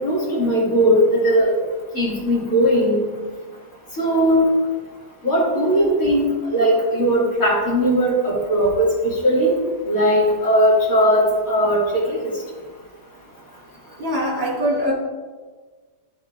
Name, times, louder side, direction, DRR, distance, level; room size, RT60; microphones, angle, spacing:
voice 1, 0.0-1.5 1.9-3.0 4.0-4.4 5.2-9.5 9.9-12.3, equal, 40° left, -6 dB, 2.6 m, -18 dB
voice 2, 14.0-14.9, equal, 30° right, -4 dB, 1.6 m, -22 dB
13.5 x 4.7 x 2.5 m, 1.4 s
omnidirectional pair, 2.3 m